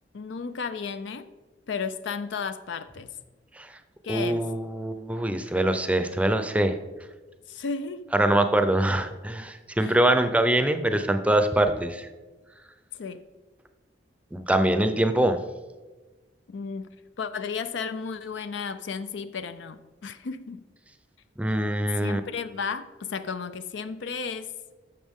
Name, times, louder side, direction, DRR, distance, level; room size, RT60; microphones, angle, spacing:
voice 1, 0.1-1.3 1.7-3.2 4.0-4.5 7.5-8.1 9.8-10.0 12.9-13.2 16.5-16.9 17.2-20.6 21.9-24.5, left 5 dB, 80° left, 12 dB, 0.5 m, -33 dB
voice 2, 4.1-6.8 8.1-12.1 14.3-15.4 21.4-22.2, right 1 dB, 5° right, 8 dB, 0.5 m, -23 dB
11.5 x 6.9 x 3.6 m, 1.2 s
head